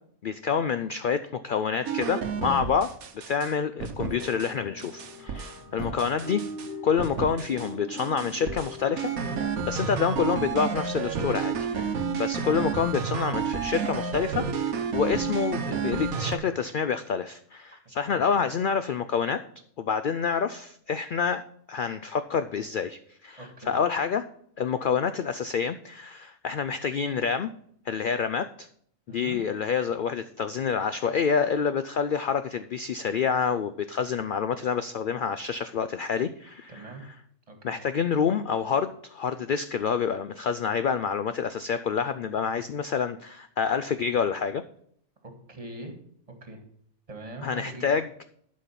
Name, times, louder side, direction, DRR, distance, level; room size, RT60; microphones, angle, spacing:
voice 1, 0.2-2.9 3.3-6.4 6.8-9.1 9.7-19.4 19.8-21.4 21.7-24.3 24.6-27.5 27.9-28.7 29.1-37.1 37.6-44.6 47.4-48.1, left 6 dB, 80° left, 11 dB, 0.4 m, -28 dB
sound 1, 1.9-3.5 3.8-4.5 4.8-6.7 7.0-7.7 8.0-16.4, right 6 dB, 85° right, 1.4 m, -31 dB
sound 2, 3.9-9.5, left 1 dB, 60° left, 3.7 m, -41 dB
voice 2, 23.4-23.7 29.1-29.4 36.7-37.0 37.5-37.8 45.2-45.9 46.4-46.6 47.1-47.9, right 2 dB, 25° right, 5 dB, 1.8 m, -42 dB
11.5 x 5.4 x 5.8 m, 0.65 s
omnidirectional pair, 1.4 m